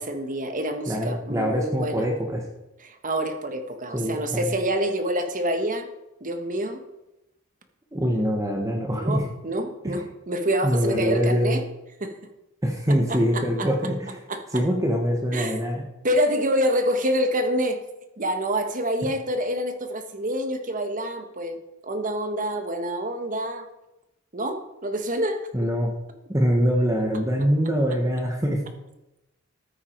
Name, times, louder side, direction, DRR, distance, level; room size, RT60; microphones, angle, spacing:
voice 1, 0.0-2.0 2.8-5.9 6.2-6.8 8.9-11.6 12.0-12.1 13.1-13.7 14.3-14.6 15.3-15.7 16.0-17.8 18.2-23.7 24.3-25.7, right 1 dB, 40° right, 7 dB, 1.4 m, -27 dB
voice 2, 0.9-2.4 3.9-4.4 7.9-9.2 9.8-10.0 10.6-11.6 12.6-14.1 14.5-15.8 25.5-25.9 26.3-28.6, equal, 15° right, 1 dB, 1.4 m, -24 dB
13.5 x 9.5 x 4.6 m, 0.93 s
head